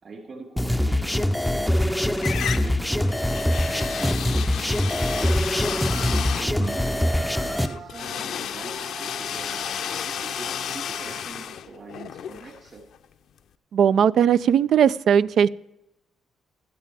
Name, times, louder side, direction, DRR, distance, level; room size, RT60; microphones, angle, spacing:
voice 1, 0.0-5.7 6.4-12.8, right 4 dB, 50° right, 0 dB, 4.3 m, -43 dB
sound 1, 0.6-7.7, left 1 dB, 5° left, 0.5 m, -23 dB
sound 2, 1.3-1.9 2.2-13.1, left 9 dB, 75° left, 0.6 m, -33 dB
sound 3, 3.8-4.0 4.7-4.8 5.5-11.2, right 5 dB, 90° right, 1.8 m, -43 dB
voice 2, 13.7-15.5, right 8 dB, 70° right, 17 dB, 0.4 m, -18 dB
16.5 x 12.5 x 3.5 m, 0.89 s
cardioid pair, 95°, 0 cm